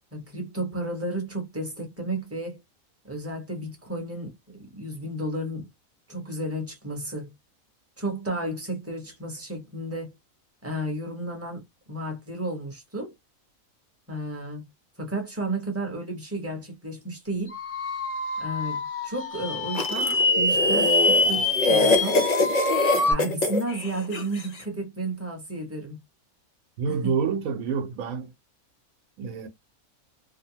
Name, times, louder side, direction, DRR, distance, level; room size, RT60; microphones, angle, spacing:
voice 1, 0.1-2.6 3.0-5.7 6.1-7.3 8.0-10.1 10.6-13.1 14.1-14.7 15.0-17.6 18.4-22.2 23.0-26.0 26.9-27.1, right 1 dB, 10° right, 0.8 m, -32 dB
sound 1, 17.5-23.1, left 2 dB, 30° left, 0.7 m, -25 dB
sound 2, 19.7-24.5, left 2 dB, 65° left, 0.4 m, -24 dB
voice 2, 26.8-28.3 29.2-29.5, right 6 dB, 75° right, 1.1 m, -27 dB
2.7 x 2.1 x 2.7 m
omnidirectional pair, 1.5 m